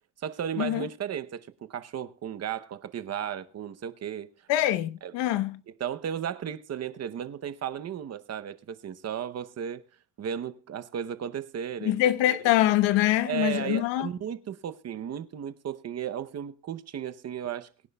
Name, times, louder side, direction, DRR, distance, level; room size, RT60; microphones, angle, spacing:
voice 1, 0.2-4.3 5.0-5.1 5.7-9.8 10.2-12.0 12.3-12.4 13.2-17.7, right 9 dB, 35° right, 0.8 m, -34 dB
voice 2, 4.5-5.6 11.8-14.1, left 13 dB, 85° left, 1.1 m, -24 dB
23.0 x 10.5 x 2.3 m
cardioid pair, 140°, 42 cm